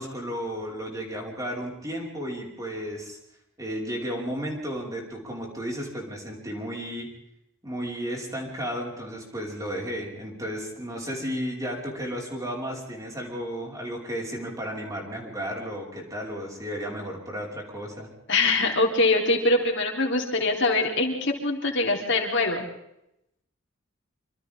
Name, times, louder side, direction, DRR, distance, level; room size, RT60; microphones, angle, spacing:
voice 1, 0.0-3.2 3.6-7.1 7.6-18.1, equal, 15° right, -1 dB, 5.4 m, -33 dB
voice 2, 18.3-22.6, left 2 dB, 60° left, 1 dB, 3.6 m, -23 dB
26.5 x 26.0 x 3.7 m, 0.81 s
head